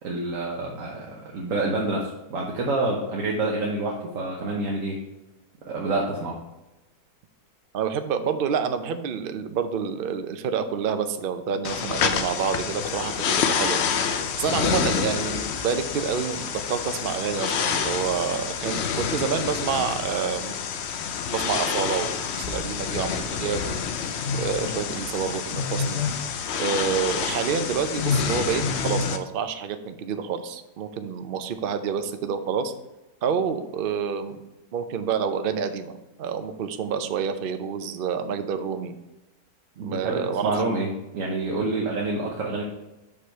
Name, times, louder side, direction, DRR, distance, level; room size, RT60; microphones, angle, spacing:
voice 1, 0.0-5.0 5.7-6.4 39.8-42.6, right 2 dB, 55° right, -2 dB, 1.3 m, -27 dB
voice 2, 7.7-20.6 21.3-23.8 24.4-26.0 26.6-32.7 33.2-34.4 34.7-35.9 36.2-38.9 39.8-40.4, right 6 dB, 80° right, 8 dB, 0.4 m, -28 dB
sound 1, 11.6-29.2, left 6 dB, 70° left, 0.6 m, -27 dB
6.5 x 5.4 x 4.4 m, 0.98 s
omnidirectional pair, 1.8 m